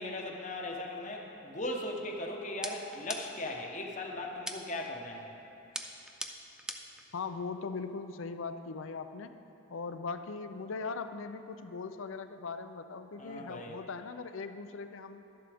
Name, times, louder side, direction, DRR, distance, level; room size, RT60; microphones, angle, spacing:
voice 1, 0.0-5.3 13.2-13.8, left 1 dB, 35° left, 1 dB, 0.9 m, -38 dB
sound 1, 2.6-3.5 4.5-4.9 5.7-7.0, right 1 dB, 5° right, 0.3 m, -41 dB
voice 2, 7.1-9.3 9.7-15.3, left 4 dB, 65° left, 10 dB, 0.5 m, -40 dB
12.5 x 11.0 x 3.5 m, 2.9 s
head